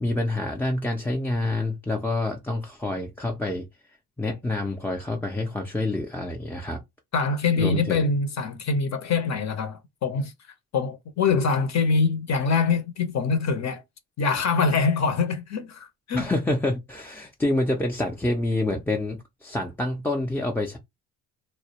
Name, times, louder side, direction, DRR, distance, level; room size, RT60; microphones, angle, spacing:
voice 1, 0.0-3.7 4.2-6.8 7.6-8.0 16.1-20.8, left 2 dB, 5° left, 0.4 m, -27 dB
voice 2, 7.1-10.3 10.7-13.8 14.2-16.3, left 4 dB, 45° left, 0.7 m, -24 dB
2.2 x 2.1 x 2.7 m
cardioid pair, 90°, 39 cm